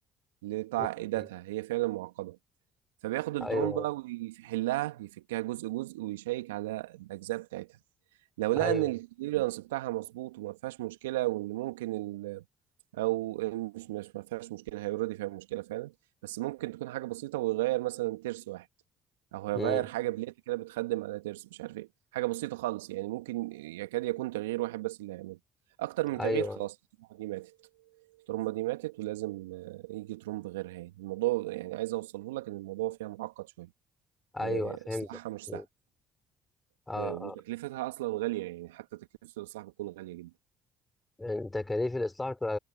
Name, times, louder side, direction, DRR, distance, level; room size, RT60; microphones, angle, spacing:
voice 1, 0.4-2.4 3.0-7.7 8.4-12.4 12.9-15.9 16.2-18.7 19.3-25.4 25.8-26.7 27.1-27.5 28.3-33.7 34.4-35.6 36.9-40.3, right 18 dB, 80° right, 2.4 m, -34 dB
voice 2, 3.4-3.9 8.6-8.9 19.5-19.8 26.2-26.6 34.3-35.1 35.5-35.7 36.9-37.4 41.2-42.6, left 2 dB, 15° left, 4.0 m, -32 dB
hypercardioid pair, 55°, 0 cm